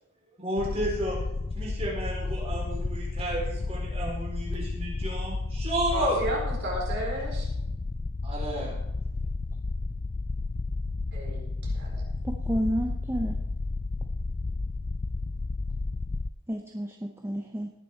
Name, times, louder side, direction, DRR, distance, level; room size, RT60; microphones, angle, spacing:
voice 1, 0.4-1.2 1.5-6.2 8.2-8.7, right 1 dB, 30° right, -3 dB, 4.1 m, -32 dB
sound 1, 0.6-16.3, left 3 dB, 30° left, 0.4 m, -32 dB
voice 2, 5.9-7.5 11.1-12.0, right 1 dB, 50° right, -2 dB, 4.3 m, -33 dB
voice 3, 12.2-13.4 16.5-17.7, equal, 10° right, 2 dB, 0.7 m, -30 dB
18.0 x 6.9 x 4.5 m, 0.85 s
head